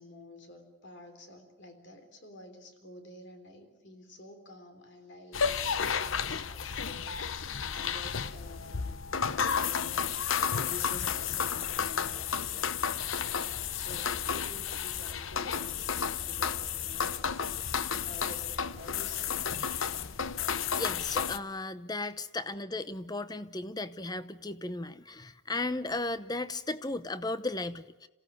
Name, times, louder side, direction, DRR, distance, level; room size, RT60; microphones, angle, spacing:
voice 1, 0.0-9.0 9.3-12.9 13.2-19.3 21.8-21.9, left 2 dB, 55° left, 6 dB, 3.6 m, -50 dB
sound 1, 5.3-21.4, left 7 dB, 70° left, 0.8 m, -32 dB
voice 2, 20.8-28.1, left 2 dB, 20° left, 13 dB, 0.8 m, -35 dB
27.0 x 16.5 x 9.4 m, 1.1 s
head